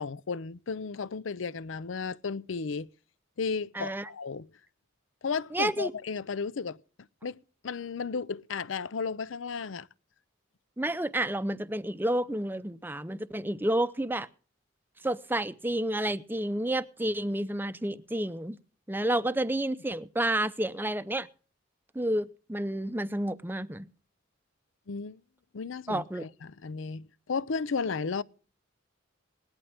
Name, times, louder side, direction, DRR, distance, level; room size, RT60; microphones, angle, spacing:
voice 1, 0.0-2.9 3.4-4.5 5.2-6.8 7.2-7.4 7.6-9.9 24.9-25.2 25.5-28.2, left 5 dB, 85° left, 0.6 m, -34 dB
voice 2, 3.7-4.1 5.5-5.9 10.8-14.3 15.0-18.6 18.9-21.3 21.9-23.9 25.9-26.3, right 1 dB, 10° right, 0.6 m, -30 dB
19.0 x 11.5 x 3.5 m
head